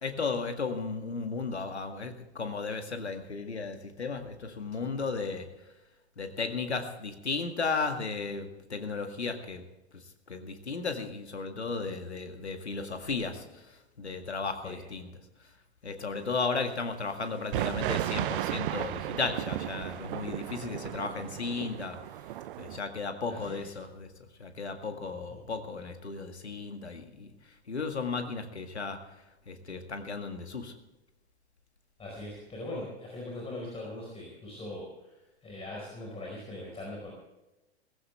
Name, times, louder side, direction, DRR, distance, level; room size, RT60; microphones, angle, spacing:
voice 1, 0.0-5.5 6.2-9.6 9.9-10.0 10.3-13.6 14.0-15.1 15.8-22.0 22.6-24.1 24.4-27.3 27.7-29.0 29.5-30.7, left 4 dB, 85° left, 6 dB, 2.1 m, -35 dB
sound 1, 17.5-22.8, right 13 dB, 55° right, 0.8 m, -34 dB
voice 2, 23.2-23.8 25.3-25.4 32.0-37.1, left 1 dB, 20° left, -2 dB, 4.8 m, -41 dB
18.5 x 15.5 x 3.4 m, 1.0 s
figure-of-eight pair, 100°, 32 cm